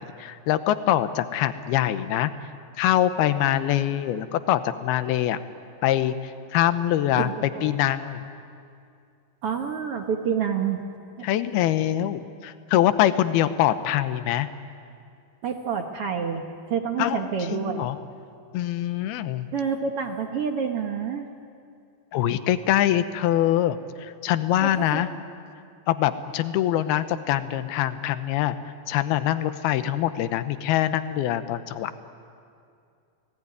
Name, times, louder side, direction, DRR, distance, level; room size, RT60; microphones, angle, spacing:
voice 1, 0.0-2.3 2.8-5.4 5.8-7.3 7.6-8.2 11.2-14.5 17.0-17.2 17.5-18.0 18.5-19.5 22.1-25.1 25.9-32.0, left 12 dB, 80° left, 11 dB, 2.8 m, -24 dB
voice 2, 7.2-7.7 9.4-10.8 11.2-11.3 15.4-17.8 19.5-21.3 24.6-25.0, right 7 dB, 65° right, 4 dB, 1.5 m, -28 dB
29.5 x 18.5 x 9.6 m, 2.5 s
omnidirectional pair, 4.5 m